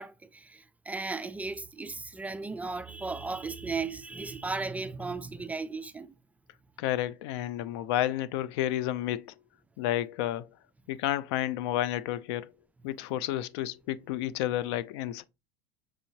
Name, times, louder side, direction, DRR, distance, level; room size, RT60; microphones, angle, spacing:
voice 1, 0.0-6.1, right 4 dB, 10° right, 0.3 m, -36 dB
voice 2, 6.8-9.3 9.8-10.5 10.9-12.5 12.8-15.2, left 13 dB, 75° left, 0.4 m, -31 dB
6.1 x 2.8 x 2.8 m
supercardioid pair, 125°, 14 cm